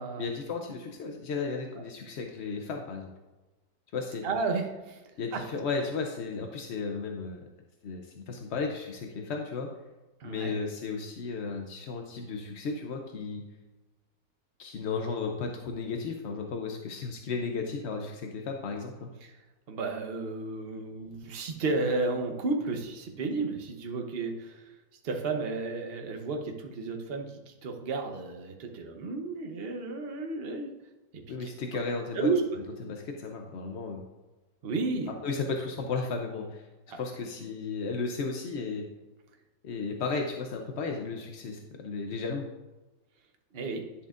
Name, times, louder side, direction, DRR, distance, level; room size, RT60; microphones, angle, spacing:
voice 1, 0.2-3.1 3.9-4.2 5.2-7.5 7.8-9.7 10.2-13.4 14.6-19.1 31.3-32.3 32.8-34.0 35.2-36.7 37.0-38.9 39.6-42.5, left 4 dB, 60° left, 3 dB, 0.7 m, -34 dB
voice 2, 4.2-5.0 5.3-5.4 10.2-10.5 19.2-19.3 19.7-24.6 25.0-30.7 31.3-31.5 32.1-32.4 34.6-35.1 36.9-37.0 43.5-43.8, right 3 dB, 45° right, 3 dB, 0.9 m, -32 dB
10.5 x 7.0 x 2.5 m, 1.1 s
omnidirectional pair, 1.9 m